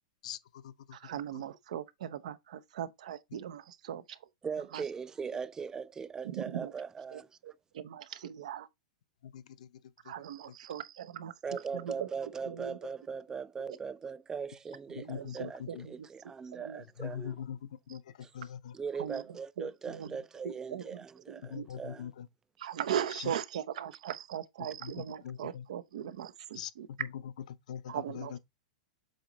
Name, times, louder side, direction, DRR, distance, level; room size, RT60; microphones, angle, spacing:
voice 1, 0.2-1.0 1.3-1.4 9.2-10.1 10.5-10.6 15.1-15.9 16.8-18.8 21.4-22.3 23.1-23.3 24.6-25.7 26.5-26.7 27.0-28.4, left 9 dB, 75° left, 0.7 m, -43 dB
voice 2, 0.9-4.2 4.7-4.8 6.2-6.7 7.1-8.7 10.0-12.1 12.4-12.8 13.7-13.8 14.9-16.1 16.5-16.8 19.0-20.1 20.4-21.7 22.6-26.9 27.9-28.4, right 10 dB, 75° right, 0.7 m, -39 dB
voice 3, 4.4-7.3 11.4-17.4 18.2-18.3 18.7-22.1, right 6 dB, 15° right, 0.3 m, -40 dB
7.7 x 3.1 x 3.9 m
hypercardioid pair, 125°, 4 cm